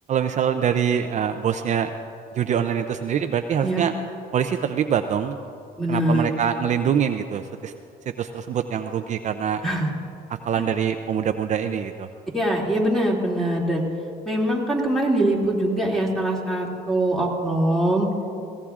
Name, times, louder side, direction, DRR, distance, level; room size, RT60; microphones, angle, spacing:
voice 1, 0.1-1.9 2.4-3.9 4.3-5.4 5.9-7.7 8.2-9.6 10.5-12.1, right 8 dB, 45° right, 7 dB, 0.5 m, -24 dB
voice 2, 5.8-6.3 9.6-9.9 10.6-10.7 12.3-13.8 14.2-18.1, right 1 dB, ahead, -3 dB, 2.5 m, -23 dB
22.0 x 17.5 x 2.4 m, 2.7 s
cardioid pair, 110°, 17 cm